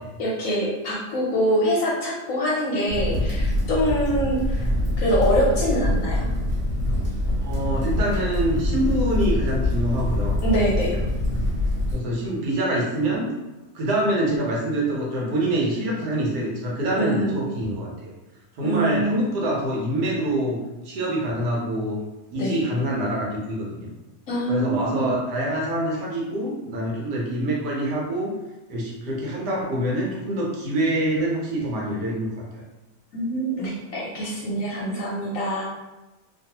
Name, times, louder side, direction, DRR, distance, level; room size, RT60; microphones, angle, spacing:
voice 1, 0.2-4.7 5.0-6.3 10.4-11.0 16.9-17.5 18.6-19.3 22.4-22.6 24.3-25.1 33.1-35.6, equal, 65° left, -4 dB, 0.9 m, -24 dB
Crackle, 2.9-11.9, left 1 dB, 60° right, 1.4 m, -24 dB
voice 2, 7.4-10.4 11.9-13.3 13.7-18.1 18.5-20.6 20.8-22.0 22.3-23.9 24.5-28.3 28.7-32.6, right 1 dB, 75° right, -4 dB, 1.4 m, -25 dB
3.0 x 2.3 x 2.8 m, 1.1 s
omnidirectional pair, 1.8 m